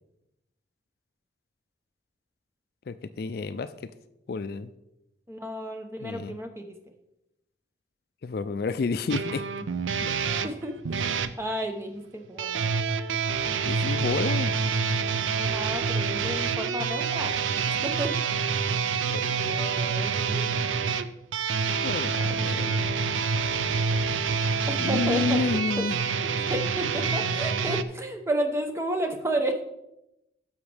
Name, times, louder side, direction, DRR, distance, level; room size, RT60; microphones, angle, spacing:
voice 1, 2.9-3.9 4.3-4.7 6.0-6.4 8.2-9.5 9.9-10.1 13.6-14.5 19.1-19.6 21.8-23.3 24.8-26.0, left 4 dB, 55° left, 13 dB, 0.3 m, -30 dB
voice 2, 5.3-6.7 10.4-12.7 15.4-17.3 17.7-18.1 19.3-20.7 24.7-25.6 26.5-29.6, right 1 dB, 15° right, 5 dB, 0.7 m, -32 dB
sound 1, 9.1-11.3 12.4-27.8, right 5 dB, 90° right, 0.5 m, -27 dB
10.5 x 7.1 x 3.4 m, 0.87 s
head